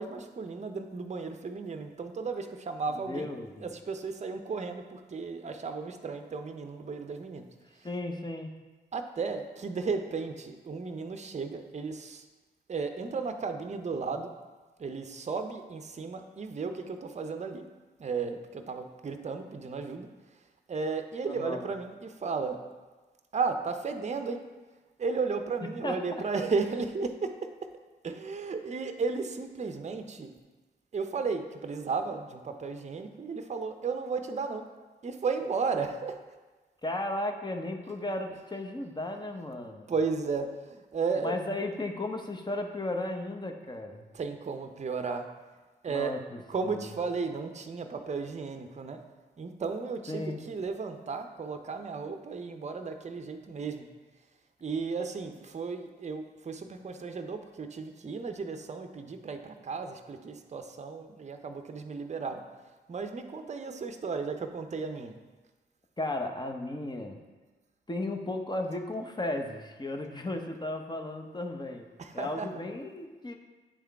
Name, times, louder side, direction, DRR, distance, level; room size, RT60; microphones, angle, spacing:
voice 1, 0.0-3.3 3.6-7.4 8.9-12.2 12.7-14.3 14.8-17.6 18.0-20.1 20.7-22.6 23.3-24.4 25.0-27.7 28.0-30.3 30.9-34.6 35.0-36.2 39.9-41.4 44.1-45.3 45.8-46.1 46.5-49.0 49.4-53.9 54.6-62.4 62.9-65.2 72.0-72.6, right 4 dB, 35° right, 7 dB, 0.6 m, -34 dB
voice 2, 3.0-3.7 7.8-8.5 21.3-21.7 25.8-26.2 36.8-39.9 41.2-44.1 45.9-46.9 50.1-50.4 66.0-67.2 67.9-71.9 72.1-73.3, left 2 dB, 25° left, 4 dB, 0.9 m, -35 dB
8.5 x 3.6 x 3.5 m, 1.3 s
supercardioid pair, 50°, 19 cm